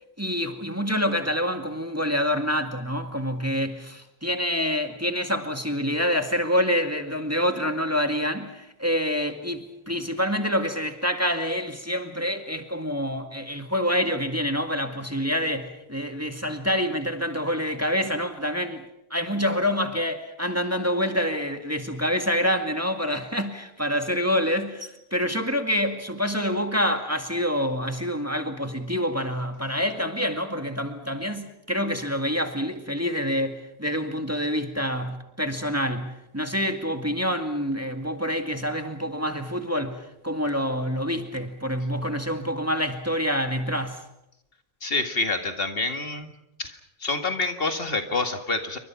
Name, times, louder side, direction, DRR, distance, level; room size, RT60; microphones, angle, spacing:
voice 1, 0.2-18.8 19.1-44.0, equal, 15° right, 2.0 m, -27 dB
voice 2, 44.8-46.3 46.6-48.8, left 3 dB, 60° left, 2.2 m, -27 dB
28.5 x 24.5 x 6.0 m
omnidirectional pair, 1.1 m